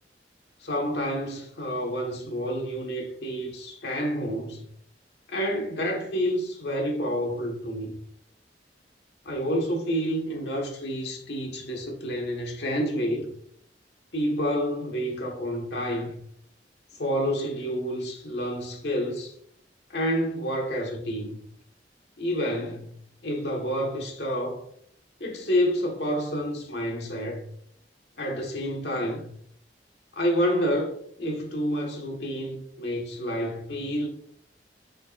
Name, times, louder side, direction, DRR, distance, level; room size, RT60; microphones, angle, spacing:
voice 1, 0.6-4.7 5.3-8.0 9.2-13.3 14.1-16.2 16.9-19.3 19.9-21.4 22.2-23.0 23.2-24.6 25.2-27.5 28.2-29.3 30.1-34.1, equal, 75° left, 1.5 m, -29 dB
8.0 x 5.6 x 2.5 m
head